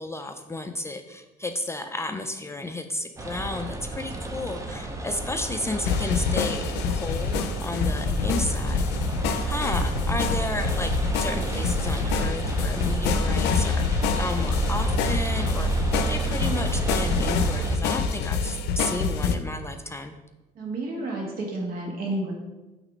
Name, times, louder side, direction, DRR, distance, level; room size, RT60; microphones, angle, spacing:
voice 1, 0.0-8.9 9.1-20.1, left 2 dB, 15° left, 6 dB, 0.3 m, -33 dB
sound 1, 3.2-17.8, right 2 dB, 20° right, 0.7 m, -29 dB
sound 2, 5.9-19.4, left 5 dB, 80° left, 0.5 m, -27 dB
voice 2, 20.6-22.3, right 2 dB, 60° right, 0 dB, 1.7 m, -30 dB
6.0 x 3.3 x 5.2 m, 1.1 s
cardioid pair, 110°, 17 cm